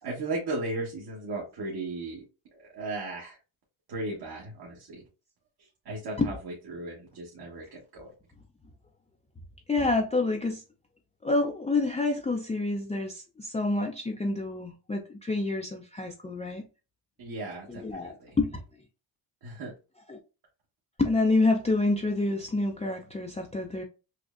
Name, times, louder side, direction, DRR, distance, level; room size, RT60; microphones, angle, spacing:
voice 1, 0.0-2.2 2.5-3.4 3.9-5.0 5.8-8.1 17.2-18.4 19.4-19.7, right 2 dB, 50° right, 1.4 m, -36 dB
voice 2, 9.7-10.6 11.2-16.6 17.7-18.6 20.1-20.2 21.0-23.8, left 2 dB, 15° left, 0.5 m, -28 dB
6.2 x 2.1 x 2.4 m
cardioid pair, 90°, 49 cm